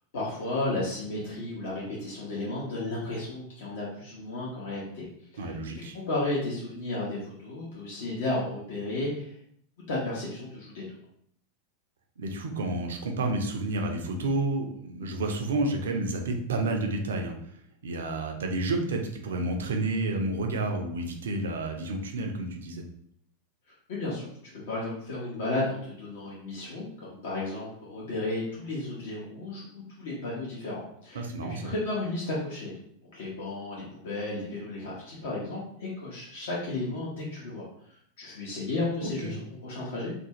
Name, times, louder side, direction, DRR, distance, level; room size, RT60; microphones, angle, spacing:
voice 1, 0.1-5.1 5.3-9.3 9.9-10.8 23.9-24.3 24.5-32.8 33.1-37.7 38.2-40.1, left 2 dB, 55° left, -6 dB, 0.7 m, -33 dB
voice 2, 5.4-6.0 12.2-17.3 17.8-22.8 31.1-31.7 39.0-39.3, right 2 dB, 65° right, 3 dB, 0.4 m, -30 dB
2.5 x 2.3 x 3.0 m, 0.68 s
figure-of-eight pair, 90°, 0 cm